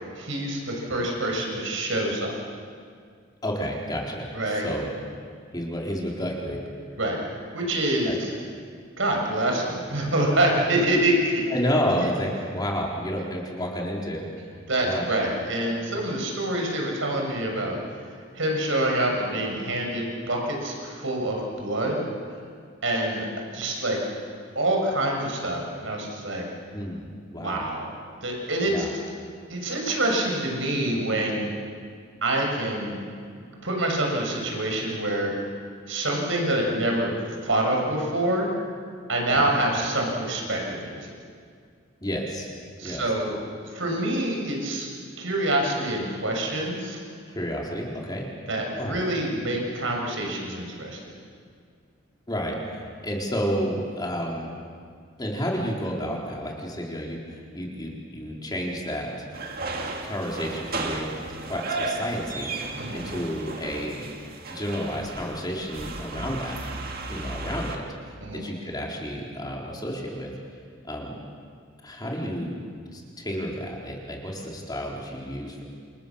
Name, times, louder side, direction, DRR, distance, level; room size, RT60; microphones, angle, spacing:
voice 1, 0.1-2.3 4.3-4.7 7.0-7.2 7.5-8.3 9.0-11.4 14.7-17.8 18.3-22.0 22.8-23.3 23.5-24.0 24.5-26.4 27.3-27.9 28.2-28.8 29.5-31.5 32.2-33.0 33.6-35.3 35.9-37.1 37.4-38.5 39.1-40.9 42.8-43.4 43.7-44.9 45.2-47.0 48.5-51.0 62.8-63.0 68.2-68.5, right 1 dB, 70° right, 0 dB, 6.6 m, -26 dB
voice 2, 3.4-4.9 5.5-6.6 8.1-8.2 11.5-14.2 14.8-15.1 26.7-27.6 28.7-28.9 39.4-39.5 42.0-42.5 42.8-43.0 47.3-48.3 48.8-49.0 52.3-54.5 55.2-59.1 60.0-62.5 62.9-64.1 64.5-66.6 67.1-67.8 68.3-70.3 70.8-71.2 71.8-72.6 72.9-75.6, equal, 20° left, -2 dB, 4.2 m, -30 dB
sound 1, 59.3-67.8, right 2 dB, 50° right, 2.2 m, -34 dB
28.5 x 28.0 x 7.2 m, 2.1 s
head